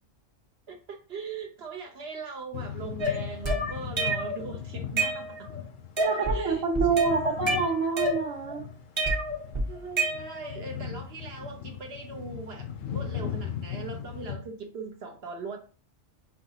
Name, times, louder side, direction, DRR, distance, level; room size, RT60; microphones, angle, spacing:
voice 1, 0.7-5.5 6.0-7.5 9.7-15.6, right 4 dB, 60° right, 2 dB, 0.8 m, -40 dB
sound 1, 2.5-14.4, left 8 dB, 75° left, 1.0 m, -38 dB
sound 2, 3.0-4.4 4.8-5.6 6.0-6.4 6.7-8.5 9.0-10.6, right 1 dB, 25° right, 0.7 m, -29 dB
voice 2, 6.0-8.6, right 4 dB, 75° right, -4 dB, 1.2 m, -27 dB
5.6 x 2.7 x 2.8 m, 0.37 s
omnidirectional pair, 1.4 m